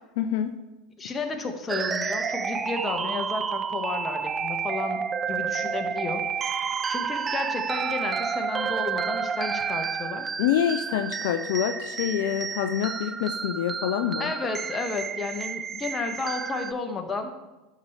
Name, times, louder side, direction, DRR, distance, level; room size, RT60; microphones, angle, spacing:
voice 1, 0.2-0.5 10.4-14.3, left 10 dB, 65° left, 8 dB, 0.5 m, -26 dB
voice 2, 1.0-6.2 6.9-10.3 14.2-17.4, left 3 dB, 25° left, 4 dB, 1.4 m, -32 dB
sound 1, 1.7-16.7, right 6 dB, 25° right, 0.5 m, -30 dB
11.5 x 6.5 x 3.2 m, 1.1 s
hypercardioid pair, 85°, 0 cm